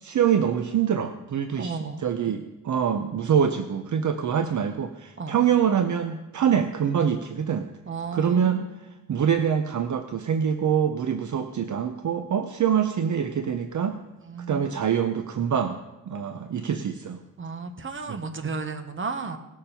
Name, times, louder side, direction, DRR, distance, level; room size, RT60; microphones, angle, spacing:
voice 1, 0.0-7.7 8.1-8.7 9.1-14.0 14.5-15.8 16.1-17.2 18.1-18.2, right 8 dB, 55° right, 8 dB, 0.6 m, -25 dB
voice 2, 1.6-2.0 5.2-5.3 7.9-8.7 14.3-14.8 17.4-19.4, right 4 dB, 35° right, 8 dB, 1.0 m, -33 dB
18.0 x 6.8 x 5.7 m, 0.99 s
wide cardioid pair, 155°, 35 cm